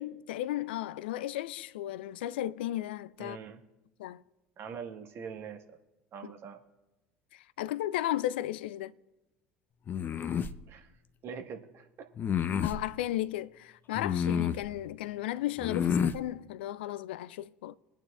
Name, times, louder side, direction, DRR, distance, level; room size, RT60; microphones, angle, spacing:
voice 1, 0.0-3.4 4.0-4.2 6.2-6.3 7.3-8.9 12.6-17.8, left 14 dB, 70° left, 0.4 m, -35 dB
voice 2, 3.2-3.6 4.6-5.6 6.1-6.6 10.7-10.9 11.2-12.1, right 6 dB, 45° right, 1.5 m, -43 dB
sound 1, 9.9-10.6 12.2-12.8 13.9-14.7 15.6-16.2, left 7 dB, 35° left, 0.7 m, -29 dB
23.5 x 9.0 x 2.4 m
figure-of-eight pair, 65°, 6 cm